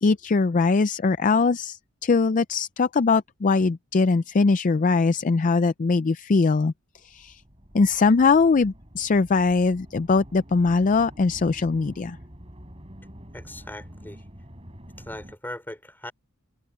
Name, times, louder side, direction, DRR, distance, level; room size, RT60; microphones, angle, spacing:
voice 1, 0.0-6.7 7.0-7.4 7.7-12.2, left 4 dB, 35° left, 0.4 m, -21 dB
sound 1, 6.9-15.3, equal, 25° right, 6.3 m, -46 dB
voice 2, 13.3-14.2 15.0-16.1, left 1 dB, 10° left, 5.5 m, -39 dB
open air
head